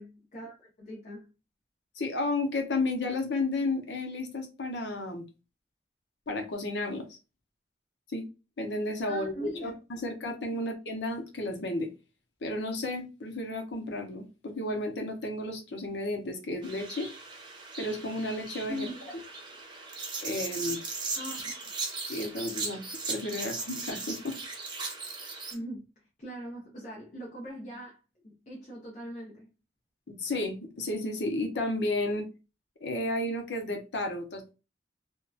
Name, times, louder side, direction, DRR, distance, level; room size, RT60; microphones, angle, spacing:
voice 1, 0.0-1.3 9.1-9.7 10.5-10.7 18.7-19.1 21.2-21.7 25.5-25.8 26.2-29.5, equal, 40° left, 0.8 m, -41 dB
voice 2, 2.0-5.2 6.3-7.2 8.1-8.2 8.6-11.9 12.4-17.1 17.8-18.9 20.2-20.8 22.1-22.8 23.1-24.4 30.1-32.3 32.8-34.5, left 2 dB, 80° left, 0.7 m, -32 dB
sound 1, 16.6-25.5, right 3 dB, 25° right, 0.6 m, -38 dB
2.7 x 2.2 x 2.3 m
head